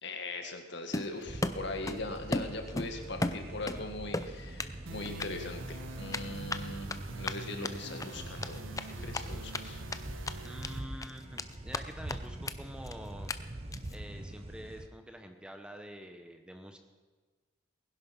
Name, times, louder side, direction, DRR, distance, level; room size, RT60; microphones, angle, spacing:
voice 1, 0.0-6.9 7.2-8.6 8.9-9.8, left 2 dB, 60° left, 5 dB, 1.9 m, -40 dB
Run, 0.9-2.0 2.3-3.8 4.1-4.7 5.1-5.3 6.1-9.6 9.9-10.0 10.2-10.7 11.0-11.8 12.1-12.2 12.5-12.6 12.8-12.9 13.3-13.4 13.7-14.0, left 2 dB, 15° left, 0.6 m, -35 dB
sound 1, 1.3-14.9, right 1 dB, 30° right, 0.9 m, -44 dB
sound 2, 4.9-10.8, right 2 dB, 75° right, 1.4 m, -45 dB
voice 2, 10.4-13.3 13.9-16.8, equal, 5° right, 5 dB, 1.0 m, -47 dB
20.0 x 11.0 x 6.0 m, 1.3 s
head